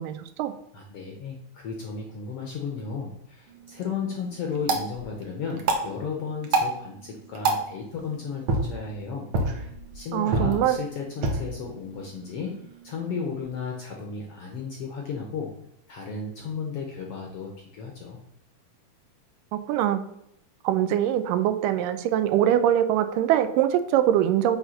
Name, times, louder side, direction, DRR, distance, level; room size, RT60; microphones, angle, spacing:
voice 1, 0.0-0.5 10.1-10.8 19.5-20.1 20.6-24.6, right 11 dB, 90° right, 10 dB, 2.2 m, -23 dB
voice 2, 0.7-12.6 12.8-15.5 15.9-18.2, left 5 dB, 70° left, 1 dB, 1.4 m, -34 dB
sound 1, 3.5-13.6, right 2 dB, 70° right, 1.2 m, -31 dB
7.9 x 3.2 x 6.3 m, 0.78 s
omnidirectional pair, 3.7 m